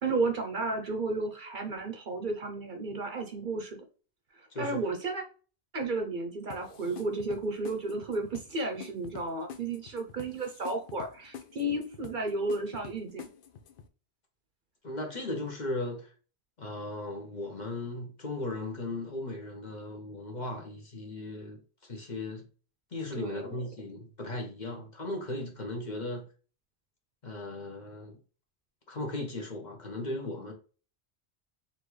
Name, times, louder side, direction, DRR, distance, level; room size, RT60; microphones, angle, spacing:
voice 1, 0.0-3.8 4.4-5.2 5.7-13.2 23.2-23.5, right 2 dB, 50° right, 0.8 m, -33 dB
voice 2, 4.5-4.8 14.8-16.1 16.6-22.4 22.9-26.3 27.2-28.2 28.9-30.5, left 2 dB, 45° left, 1.1 m, -37 dB
sound 1, 6.5-13.9, left 7 dB, 60° left, 0.7 m, -47 dB
4.3 x 3.4 x 3.2 m
omnidirectional pair, 1.1 m